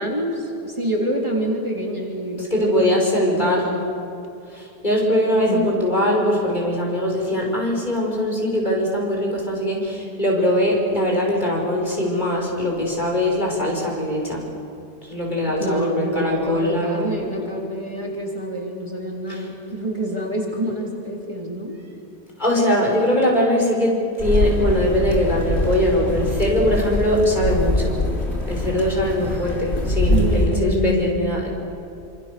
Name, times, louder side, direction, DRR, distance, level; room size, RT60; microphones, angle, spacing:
voice 1, 0.0-3.9 5.3-5.7 15.6-21.8 30.1-31.0, equal, 25° right, -1 dB, 3.4 m, -27 dB
voice 2, 2.5-3.6 4.5-14.5 15.1-17.3 19.3-19.5 22.4-28.0 28.5-31.5, left 1 dB, 45° left, -1 dB, 5.9 m, -21 dB
sound 1, 24.2-30.5, left 1 dB, 85° left, 4.0 m, -23 dB
28.0 x 26.5 x 6.9 m, 2.6 s
omnidirectional pair, 1.1 m